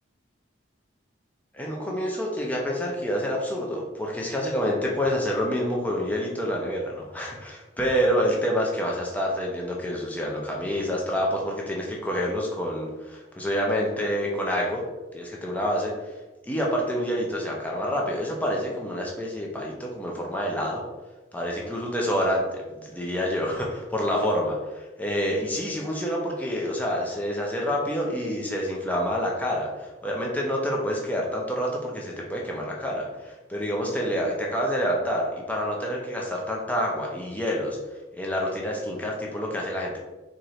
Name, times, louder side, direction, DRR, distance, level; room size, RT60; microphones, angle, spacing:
voice 1, 1.5-14.8 15.1-16.2 16.4-20.8 21.3-37.8 38.1-40.0, equal, 10° left, -2 dB, 0.5 m, -27 dB
4.1 x 2.5 x 3.0 m, 1.1 s
head